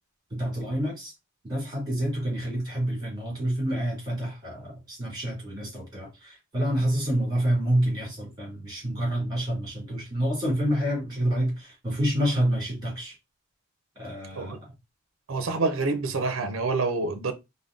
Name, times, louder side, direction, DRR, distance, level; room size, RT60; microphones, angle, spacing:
voice 1, 0.3-1.1 1.5-13.1 14.0-14.6, right 1 dB, 20° right, 2.1 m, -28 dB
voice 2, 15.3-17.3, right 3 dB, 75° right, 0.5 m, -27 dB
3.8 x 2.1 x 3.6 m
head